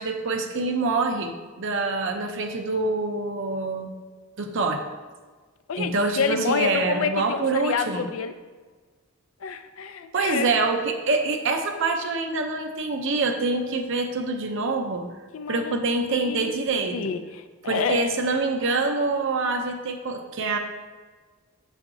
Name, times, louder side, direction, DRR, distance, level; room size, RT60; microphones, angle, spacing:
voice 1, 0.0-1.3 1.6-3.9 4.4-4.8 5.8-8.1 10.1-15.0 15.5-17.1 17.7-20.6, right 3 dB, 60° right, 4 dB, 0.7 m, -25 dB
voice 2, 5.7-8.3 9.4-10.5 15.3-15.8 16.1-16.6 16.9-18.1, left 6 dB, 75° left, 9 dB, 0.4 m, -28 dB
7.3 x 5.6 x 2.7 m, 1.4 s
head